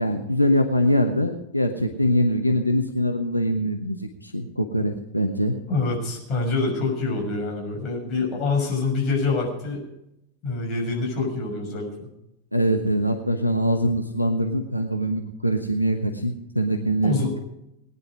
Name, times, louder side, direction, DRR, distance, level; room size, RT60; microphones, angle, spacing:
voice 1, 0.0-5.6 12.5-17.4, equal, 90° left, 5 dB, 1.1 m, -23 dB
voice 2, 5.7-9.8 10.4-12.1 17.0-17.3, left 3 dB, 35° left, 0 dB, 6.4 m, -26 dB
19.5 x 10.5 x 5.0 m, 0.83 s
figure-of-eight pair, 90°, 0 cm